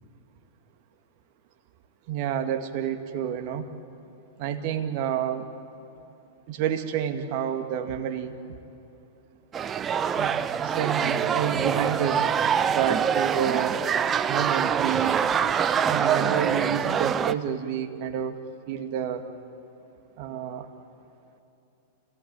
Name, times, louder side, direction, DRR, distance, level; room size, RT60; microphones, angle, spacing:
voice 1, 2.1-3.7 4.4-5.5 6.5-8.4 10.1-12.3 12.7-13.9 14.3-15.3 15.9-18.4 18.7-19.3 20.2-20.7, right 9 dB, 50° right, 7 dB, 2.0 m, -29 dB
sound 1, 9.5-17.3, right 7 dB, 25° right, 0.8 m, -25 dB
28.5 x 17.5 x 9.0 m, 2.8 s
figure-of-eight pair, 95°, 0 cm